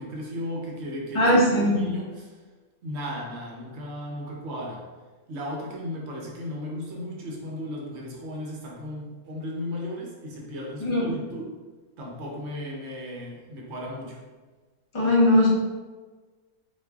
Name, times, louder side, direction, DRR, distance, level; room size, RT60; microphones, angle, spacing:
voice 1, 0.0-2.3 2.8-4.8 5.3-11.5 12.0-14.2, left 1 dB, 55° right, -2 dB, 0.9 m, -35 dB
voice 2, 1.1-1.9 10.8-11.1 14.9-15.5, left 1 dB, 40° left, -5 dB, 0.4 m, -19 dB
4.0 x 2.5 x 2.3 m, 1.3 s
omnidirectional pair, 1.5 m